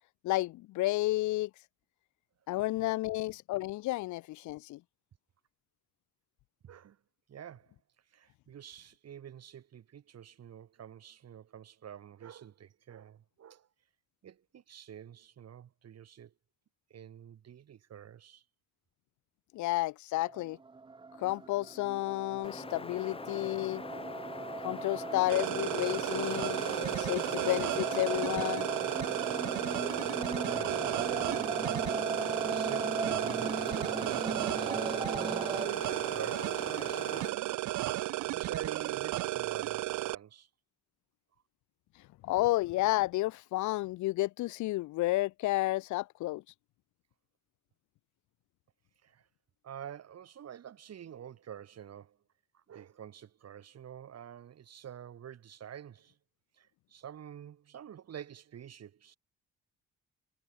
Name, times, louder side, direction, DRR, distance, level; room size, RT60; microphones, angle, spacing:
voice 1, 0.2-1.5 2.5-4.8 19.5-20.6 21.2-23.8 24.6-26.6 27.0-28.7 42.2-46.4, left 18 dB, 75° left, 0.5 m, -31 dB
voice 2, 6.6-7.0 7.3-7.7 8.1-13.7 14.2-16.3 16.9-18.4 30.4-37.6 38.3-40.5 49.0-49.3 49.6-52.2 52.5-56.2 56.6-59.2, right 9 dB, 55° right, 2.3 m, -47 dB
sound 1, 20.2-35.7, right 4 dB, 15° right, 0.6 m, -38 dB
Wind, 22.4-37.3, left 4 dB, 20° left, 0.7 m, -43 dB
sound 2, 25.3-40.1, right 16 dB, 75° right, 0.7 m, -34 dB
cardioid pair, 90°, 30 cm